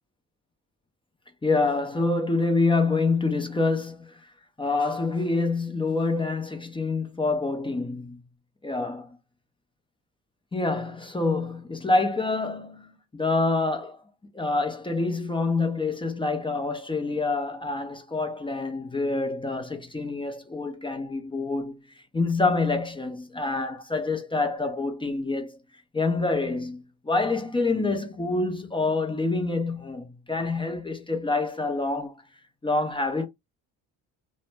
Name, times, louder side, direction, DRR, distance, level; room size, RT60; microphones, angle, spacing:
voice 1, 1.4-4.0 4.6-8.2 8.6-9.1 10.5-14.0 14.3-21.8 22.1-25.6 25.9-32.1 32.6-33.3, left 3 dB, 10° left, 0.5 m, -26 dB
2.1 x 2.0 x 3.2 m
supercardioid pair, 70°, 43 cm